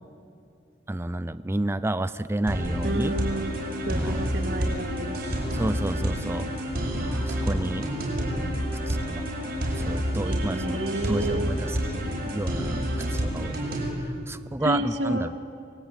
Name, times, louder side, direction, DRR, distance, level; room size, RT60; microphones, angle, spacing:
voice 1, 0.9-3.2 3.9-4.2 5.5-6.5 6.8-8.1 8.9-9.0 9.8-12.8 13.1-13.6 14.3-15.3, right 1 dB, 15° right, 12 dB, 0.5 m, -30 dB
sound 1, 2.5-13.9, equal, 60° right, 6.8 m, -29 dB
voice 2, 2.8-5.1 10.2-11.5 14.6-15.3, right 1 dB, 85° right, 4 dB, 2.5 m, -30 dB
27.5 x 22.5 x 8.9 m, 2.5 s
head